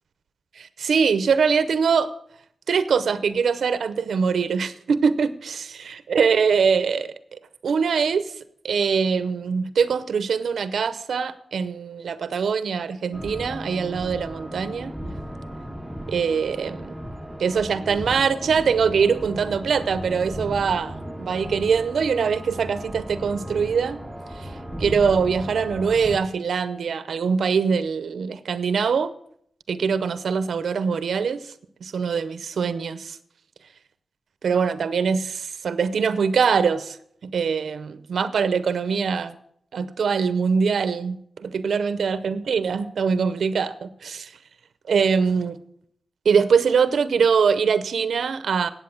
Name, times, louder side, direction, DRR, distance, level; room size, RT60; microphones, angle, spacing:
voice 1, 0.6-2.1 2.7-8.3 8.6-14.9 16.1-17.0 17.4-24.0 24.3-24.5 24.8-29.1 29.7-31.4 31.8-33.2 34.4-37.0 37.2-39.4 39.7-44.3 44.9-45.6 46.2-48.7, right 6 dB, 75° right, 13 dB, 0.6 m, -23 dB
sound 1, 13.1-26.2, equal, 5° right, 0.8 m, -35 dB
9.9 x 8.1 x 7.1 m, 0.66 s
wide cardioid pair, 105°, 0 cm